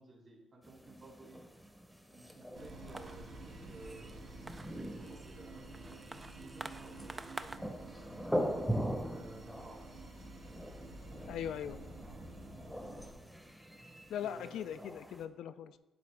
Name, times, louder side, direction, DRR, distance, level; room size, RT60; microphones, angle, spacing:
voice 1, 0.0-1.4 2.1-4.3 4.7-8.2 9.0-9.8 14.2-14.8, right 2 dB, 45° right, -2 dB, 2.5 m, -55 dB
sound 1, 0.6-15.2, equal, ahead, 0.9 m, -42 dB
sound 2, 2.5-13.1, right 2 dB, 65° right, 2.0 m, -50 dB
sound 3, 2.6-7.6, right 2 dB, 25° right, 0.3 m, -49 dB
voice 2, 11.3-11.8 14.1-15.8, left 9 dB, 75° left, 11 dB, 0.3 m, -40 dB
10.5 x 3.9 x 3.4 m, 1.0 s
cardioid pair, 90°, 0 cm